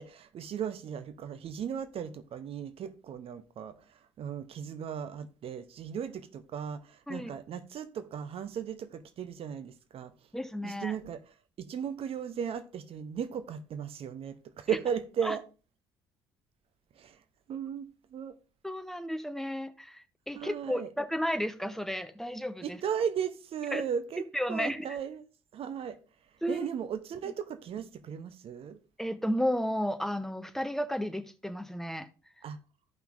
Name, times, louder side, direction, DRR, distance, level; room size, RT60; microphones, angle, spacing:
voice 1, 0.0-10.1 10.6-11.2 11.6-15.4 17.0-17.2 17.5-18.4 20.3-20.9 22.6-24.2 24.5-25.2 25.5-26.0 26.5-28.8 32.4-32.6, right 8 dB, 50° right, 0.8 m, -36 dB
voice 2, 10.3-11.0 14.7-14.8 15.2-15.4 18.6-22.8 23.7-23.8 24.3-25.0 26.4-26.7 29.0-32.1, equal, 5° left, 0.8 m, -33 dB
14.0 x 5.7 x 2.5 m
hypercardioid pair, 50°, 12 cm